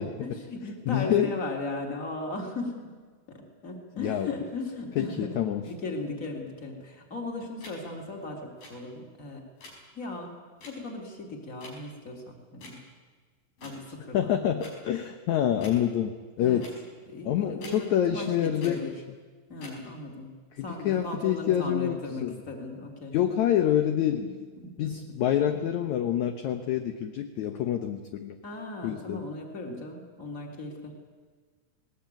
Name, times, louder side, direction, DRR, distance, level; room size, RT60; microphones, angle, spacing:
voice 1, 0.2-2.9 3.3-5.4 5.7-9.5 9.9-10.3 10.7-12.8 13.6-14.3 16.4-16.6 17.1-18.9 19.5-23.2 24.2-24.3 24.6-24.9 28.4-30.9, left 2 dB, 25° left, 2 dB, 3.3 m, -37 dB
voice 2, 0.9-1.3 4.0-4.3 5.0-5.6 14.1-16.7 17.3-18.8 20.5-22.3 23.1-24.3 24.8-28.4 28.8-29.2, left 10 dB, 65° left, 6 dB, 2.2 m, -27 dB
sound 1, 7.6-7.7 8.6-8.7 9.6-9.8 10.6-10.7 11.6-11.7 12.6-12.8 13.6-13.8 14.6-14.7 15.6-15.8 16.6-16.8 17.6-17.8 18.6-18.7 19.6-19.8, left 2 dB, 80° left, 7.0 m, -46 dB
20.0 x 19.5 x 9.1 m, 1.5 s
omnidirectional pair, 4.0 m